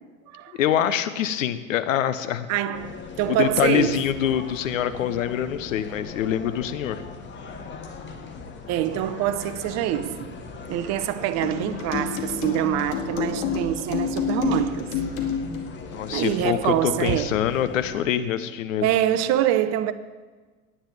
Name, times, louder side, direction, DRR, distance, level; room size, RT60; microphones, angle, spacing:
voice 1, 0.6-2.5 3.3-7.0 15.9-18.9, left 10 dB, 70° left, 1.0 m, -25 dB
voice 2, 2.5-2.9 3.2-4.0 8.7-10.3 10.7-14.9 16.1-17.4 18.8-19.9, right 12 dB, 40° right, 0.8 m, -25 dB
sound 1, 2.7-18.1, left 4 dB, 25° left, 1.4 m, -39 dB
sound 2, 11.4-15.7, left 6 dB, 55° left, 2.3 m, -28 dB
18.0 x 10.0 x 3.5 m
hypercardioid pair, 90°, 40 cm